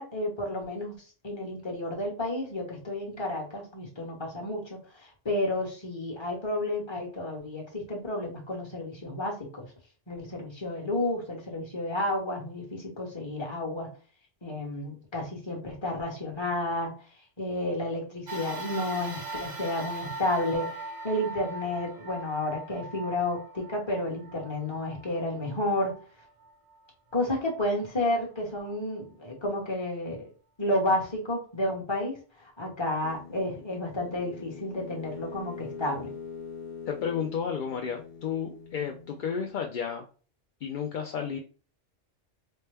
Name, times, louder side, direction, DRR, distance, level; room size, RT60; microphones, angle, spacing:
voice 1, 0.0-9.6 10.1-13.9 14.4-16.9 17.4-25.9 27.1-30.3 30.6-36.1, left 1 dB, 25° left, -1 dB, 1.1 m, -31 dB
sound 1, 18.3-26.9 27.5-27.6 28.7-28.8, right 2 dB, 25° right, 0.5 m, -40 dB
sound 2, 33.0-39.6, left 5 dB, 90° left, 0.9 m, -43 dB
voice 2, 36.9-40.1 40.6-41.4, left 7 dB, 60° left, 3 dB, 0.5 m, -32 dB
4.4 x 2.1 x 3.3 m, 0.37 s
omnidirectional pair, 1.2 m